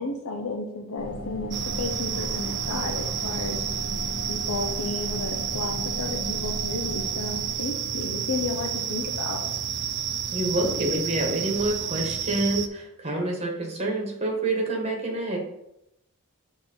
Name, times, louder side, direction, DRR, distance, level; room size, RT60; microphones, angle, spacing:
voice 1, 0.0-3.6 4.3-9.5, left 3 dB, 65° left, 3 dB, 0.6 m, -33 dB
sound 1, 1.0-7.5, left 1 dB, 45° left, 1.3 m, -36 dB
sound 2, 1.5-12.7, right 8 dB, 55° right, 0.4 m, -30 dB
voice 2, 10.3-15.4, right 1 dB, 30° right, 0 dB, 1.4 m, -27 dB
6.4 x 3.0 x 5.5 m, 0.83 s
head